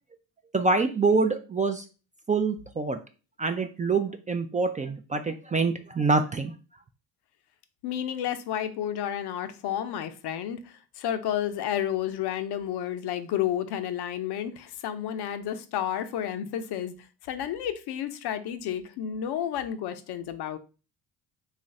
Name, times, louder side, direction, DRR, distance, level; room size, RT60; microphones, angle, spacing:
voice 1, 0.5-1.9 2.3-3.0 3.4-6.5, right 4 dB, 20° right, 0.3 m, -25 dB
voice 2, 7.8-16.9 17.2-20.6, left 10 dB, 60° left, 0.6 m, -31 dB
3.1 x 2.4 x 4.0 m
hypercardioid pair, 60°, 43 cm